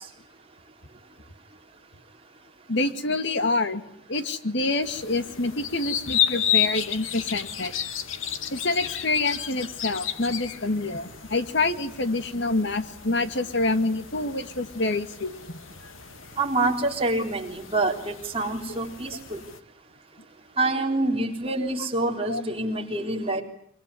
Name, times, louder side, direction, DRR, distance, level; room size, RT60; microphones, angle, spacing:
voice 1, 2.7-3.8 4.1-7.7 8.5-15.6 18.7-18.8 22.3-22.4, left 2 dB, 60° left, 10 dB, 2.2 m, -27 dB
sound 1, 4.8-19.6, left 10 dB, 90° left, 1.8 m, -32 dB
voice 2, 16.4-19.4 20.6-23.4, right 2 dB, 30° right, 2 dB, 3.8 m, -26 dB
25.0 x 24.5 x 9.7 m, 0.64 s
head